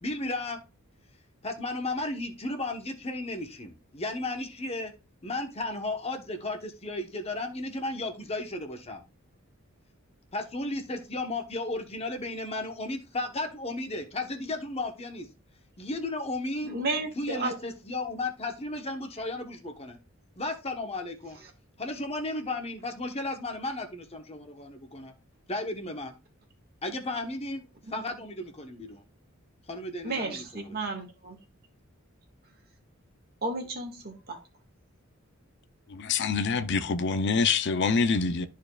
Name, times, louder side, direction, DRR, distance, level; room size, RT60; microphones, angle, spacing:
voice 1, 0.0-0.6 1.4-4.9 5.2-9.0 10.3-15.3 15.8-16.8 17.2-20.0 20.4-21.4 21.8-25.1 25.5-26.1 26.8-27.6 27.9-29.0 29.7-30.8, left 2 dB, 30° left, 1.1 m, -34 dB
voice 2, 16.6-17.5 30.0-31.4 33.4-34.4, right 2 dB, 50° right, 1.8 m, -32 dB
voice 3, 35.9-38.5, left 5 dB, 55° left, 0.6 m, -26 dB
13.0 x 4.6 x 2.4 m
head